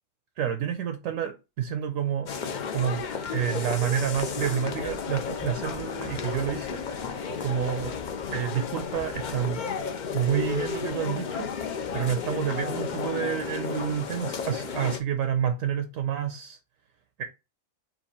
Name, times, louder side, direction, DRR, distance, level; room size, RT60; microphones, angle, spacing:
voice 1, 0.4-2.3 2.7-3.0 3.3-6.9 7.4-7.9 8.3-9.7 10.1-11.5 11.9-16.6 17.2-17.3, right 9 dB, 75° right, 1.0 m, -29 dB
sound 1, 2.3-15.0, left 6 dB, 65° left, 0.4 m, -33 dB
4.5 x 2.5 x 4.2 m
omnidirectional pair, 1.4 m